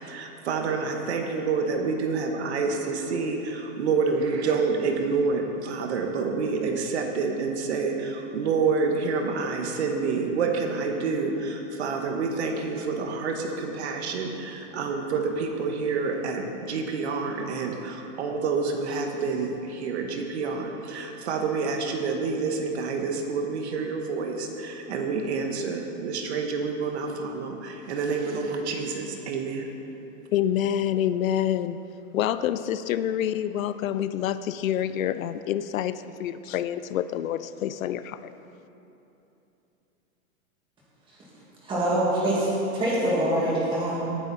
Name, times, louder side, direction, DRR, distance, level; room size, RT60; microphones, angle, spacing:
voice 1, 0.1-29.7, right 4 dB, 50° right, 3 dB, 1.4 m, -28 dB
voice 2, 30.3-31.8 32.1-38.3, left 10 dB, 70° left, 13 dB, 0.5 m, -27 dB
voice 3, 41.6-44.1, right 1 dB, 10° right, -6 dB, 2.3 m, -24 dB
18.5 x 9.2 x 4.1 m, 3.0 s
supercardioid pair, 175°, 43 cm